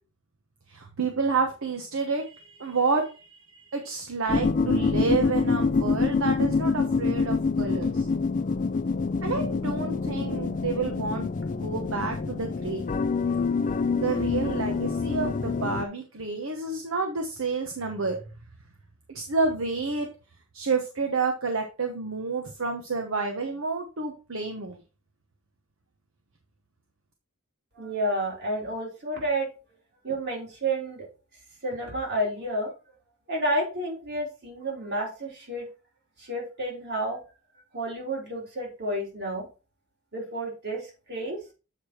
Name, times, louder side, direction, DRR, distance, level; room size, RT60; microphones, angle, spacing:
voice 1, 0.7-8.1 9.2-12.8 14.0-18.2 19.1-20.1 20.5-24.8, right 4 dB, 70° right, 4 dB, 1.0 m, -29 dB
sound 1, 4.3-15.8, left 4 dB, 40° left, 0.4 m, -26 dB
voice 2, 27.8-29.5 30.0-31.1 31.6-32.7 33.3-35.7 36.2-37.2 37.7-39.5 40.1-41.4, right 1 dB, 55° right, -2 dB, 3.4 m, -30 dB
8.0 x 4.9 x 4.3 m, 0.33 s
head